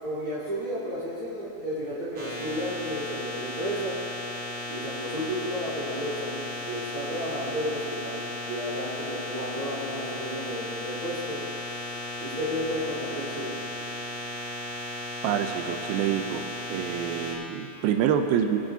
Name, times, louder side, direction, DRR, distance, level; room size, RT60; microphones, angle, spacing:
voice 1, 0.0-3.9 4.7-11.4 12.2-13.6, equal, 15° right, -13 dB, 1.7 m, -32 dB
sound 1, 2.1-17.3, left 1 dB, 40° right, 1.8 m, -35 dB
voice 2, 15.2-16.4 16.7-18.6, right 9 dB, 80° right, 6 dB, 2.3 m, -26 dB
20.0 x 10.0 x 2.8 m, 2.9 s
omnidirectional pair, 4.4 m